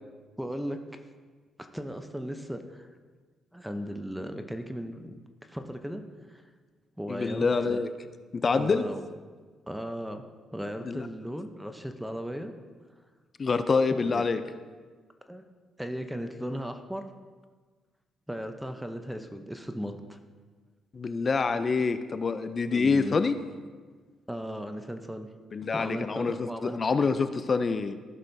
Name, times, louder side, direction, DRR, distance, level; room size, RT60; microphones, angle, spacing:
voice 1, 0.4-0.8 1.7-2.9 3.5-5.2 5.5-6.0 6.3-6.4 7.0-7.9 8.5-9.1 9.7-10.3 10.5-12.5 13.9-14.2 15.3-15.4 15.8-17.0 18.3-20.2 22.7-23.2 24.3-25.3 25.7-26.8, equal, 5° right, 7 dB, 0.7 m, -36 dB
voice 2, 7.1-7.9 8.3-8.8 10.8-11.1 13.4-14.4 20.9-23.3 25.5-27.9, left 4 dB, 40° left, 10 dB, 0.5 m, -26 dB
15.0 x 6.3 x 2.7 m, 1.5 s
cardioid pair, 90°, 0 cm